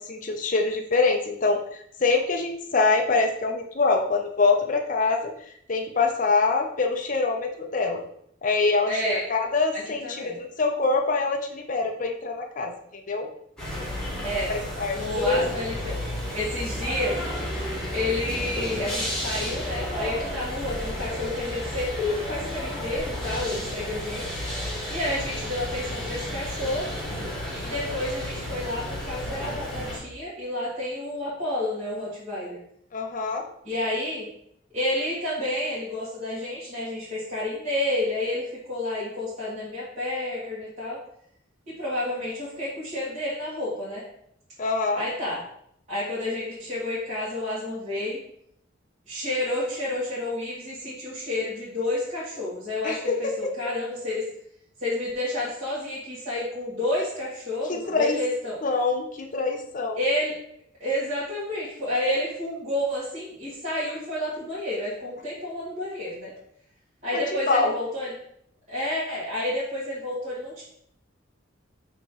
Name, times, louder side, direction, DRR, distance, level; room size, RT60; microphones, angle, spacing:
voice 1, 0.1-5.3 5.7-8.0 8.4-12.7 13.1-13.3 14.8-15.5 32.9-33.4 44.6-45.0 52.8-53.5 57.7-58.2 58.6-60.0 67.1-67.2 67.5-67.7, left 3 dB, 40° left, 3 dB, 0.6 m, -24 dB
voice 2, 8.9-9.2 9.7-10.4 14.2-14.6 14.9-15.9 16.3-17.2 17.9-24.2 24.9-27.0 27.5-32.6 33.6-34.3 34.7-41.0 41.7-44.0 44.9-45.4 45.9-48.2 49.1-54.3 54.8-58.6 60.0-60.3 60.8-66.3 67.0-68.1 68.7-70.6, left 1 dB, 35° right, -10 dB, 2.2 m, -30 dB
sound 1, 13.6-30.0, equal, 5° left, 1.6 m, -32 dB
6.0 x 3.0 x 5.3 m, 0.69 s
head